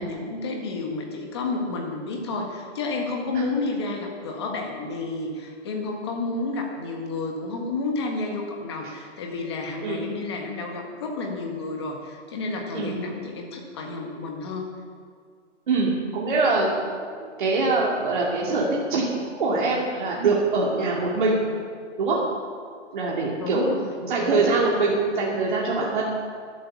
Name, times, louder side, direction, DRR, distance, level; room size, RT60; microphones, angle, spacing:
voice 1, 0.0-14.8 23.4-23.9 24.2-24.4, left 3 dB, 20° left, 2 dB, 1.5 m, -31 dB
voice 2, 15.7-21.4 22.0-22.2 22.9-23.7 24.0-26.0, right 3 dB, 40° right, -4 dB, 2.5 m, -24 dB
12.0 x 11.5 x 7.1 m, 2.1 s
hypercardioid pair, 175°, 37 cm